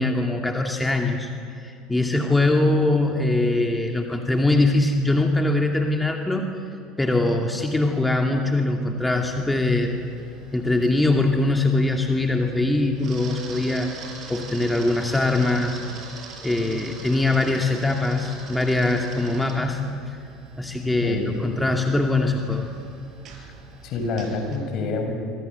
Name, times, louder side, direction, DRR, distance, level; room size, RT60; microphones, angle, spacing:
voice 1, 0.0-6.5 7.0-10.0 10.5-13.9 14.3-15.8 16.4-20.2 20.6-22.7, left 2 dB, 10° left, 2 dB, 2.5 m, -22 dB
Camera, 9.0-24.6, right 4 dB, 45° right, 7.1 m, -43 dB
voice 2, 21.0-21.3 23.8-25.1, left 3 dB, 50° left, 4 dB, 6.5 m, -27 dB
26.5 x 25.0 x 8.1 m, 2.4 s
hypercardioid pair, 70°, 0 cm